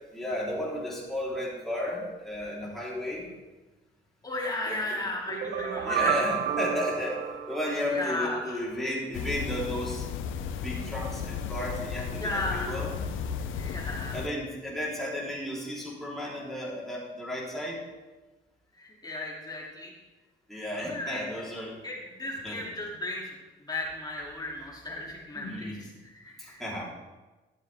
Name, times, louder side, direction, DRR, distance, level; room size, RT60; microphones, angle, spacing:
voice 1, 0.1-3.3 4.6-5.0 5.8-10.1 10.6-12.9 14.1-17.8 20.5-21.7 22.4-22.6 25.4-25.8 26.4-26.8, left 1 dB, ahead, -6 dB, 3.8 m, -33 dB
voice 2, 4.2-6.2 7.9-8.6 12.1-12.8 13.5-14.2 18.8-19.9 20.7-21.2 21.8-23.3 23.6-26.8, left 1 dB, 20° left, -3 dB, 3.0 m, -35 dB
sound 1, 5.3-8.3, right 10 dB, 60° right, 0.8 m, -31 dB
sound 2, 9.1-14.3, left 7 dB, 80° left, 0.7 m, -34 dB
13.0 x 7.5 x 3.6 m, 1.2 s
cardioid pair, 90°, 20 cm